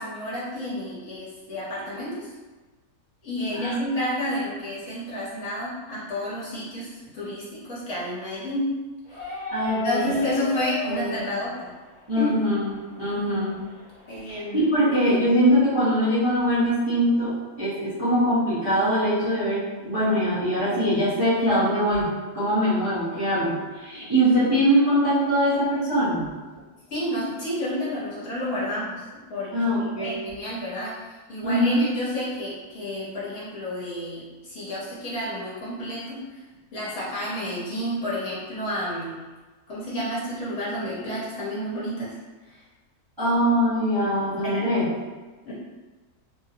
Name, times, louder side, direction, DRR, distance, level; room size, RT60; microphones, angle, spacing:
voice 1, 0.0-2.3 3.2-8.7 9.1-9.4 9.8-11.7 12.1-12.3 14.1-14.7 26.9-29.0 29.3-30.9 31.3-36.4 36.7-39.1 39.7-42.1 42.5-42.6 44.4-44.6 45.4-45.5, left 1 dB, 60° left, -8 dB, 1.3 m, -30 dB
sound 1, 9.1-14.7, left 3 dB, 75° right, 1.7 m, -37 dB
voice 2, 9.5-10.1 10.9-11.2 12.1-12.7 13.0-13.5 14.2-22.1 22.3-26.3 29.5-30.2 31.4-31.8 43.2-44.9, equal, 20° right, -12 dB, 0.8 m, -22 dB
3.6 x 2.0 x 2.7 m, 1.3 s
omnidirectional pair, 1.6 m